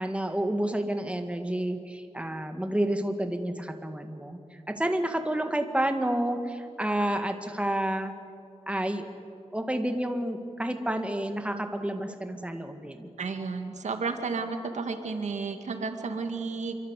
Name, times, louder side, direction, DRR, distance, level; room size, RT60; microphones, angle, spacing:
voice 1, 0.0-8.1 8.7-9.1 9.5-13.1, right 1 dB, 10° right, 6 dB, 2.0 m, -30 dB
voice 2, 13.2-16.7, right 4 dB, 85° right, 6 dB, 2.2 m, -32 dB
26.5 x 24.5 x 8.4 m, 2.5 s
wide cardioid pair, 100°, 12 cm